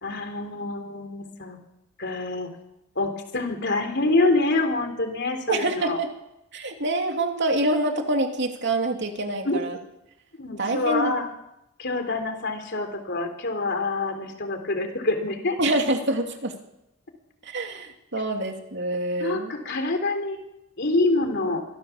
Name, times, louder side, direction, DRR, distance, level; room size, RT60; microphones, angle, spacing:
voice 1, 0.0-1.6 2.0-2.5 3.0-6.0 9.4-9.6 10.4-11.2 11.8-15.6 19.2-20.4 20.8-21.6, left 2 dB, 55° left, 6 dB, 3.5 m, -26 dB
voice 2, 5.5-6.1 6.5-9.8 10.6-11.1 15.6-16.5 17.4-19.5, right 2 dB, 60° right, 4 dB, 2.8 m, -26 dB
24.0 x 15.5 x 7.3 m, 0.87 s
head